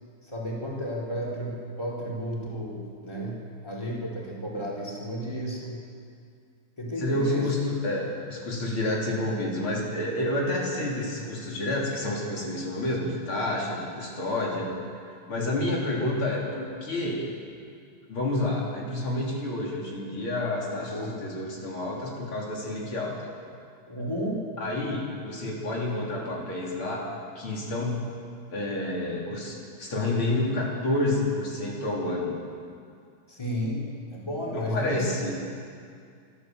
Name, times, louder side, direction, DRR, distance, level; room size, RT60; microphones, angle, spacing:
voice 1, 0.2-5.8 6.8-7.5 7.9-8.0 20.7-21.1 23.9-24.4 26.3-26.4 33.3-35.3, equal, 10° left, -4 dB, 4.3 m, -33 dB
voice 2, 7.0-14.7 15.1-17.3 18.1-23.2 24.6-28.1 28.5-32.4 34.5-35.4, left 1 dB, 75° left, -3 dB, 3.9 m, -29 dB
27.5 x 13.0 x 7.8 m, 2.3 s
omnidirectional pair, 2.3 m